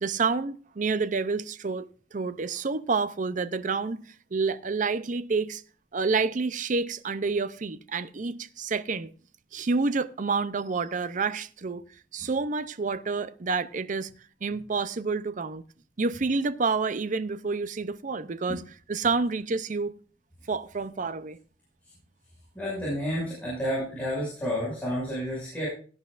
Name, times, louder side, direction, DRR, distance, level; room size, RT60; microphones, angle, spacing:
voice 1, 0.0-4.0 4.3-5.6 5.9-9.1 9.5-11.8 12.1-14.1 14.4-15.6 16.0-18.6 18.9-19.9 20.5-21.4, right 4 dB, 45° right, 0.5 m, -28 dB
voice 2, 22.5-25.7, equal, 10° left, 6.0 m, -30 dB
17.0 x 10.5 x 2.5 m
head